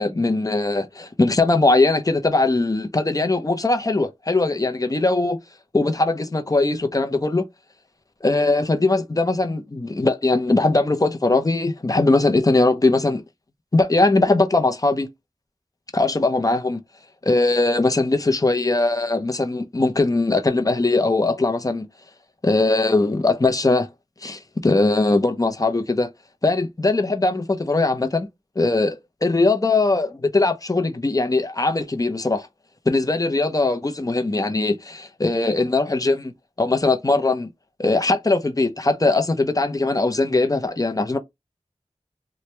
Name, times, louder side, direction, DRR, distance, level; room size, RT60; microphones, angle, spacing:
voice 1, 0.0-5.4 5.7-7.4 8.2-13.2 13.7-15.1 15.9-16.8 17.2-21.9 22.4-23.9 24.2-26.1 26.4-28.3 28.6-32.5 32.9-36.3 36.6-37.5 37.8-41.2, left 2 dB, 30° left, 0.5 m, -20 dB
2.9 x 2.2 x 3.2 m
wide cardioid pair, 60°, 12 cm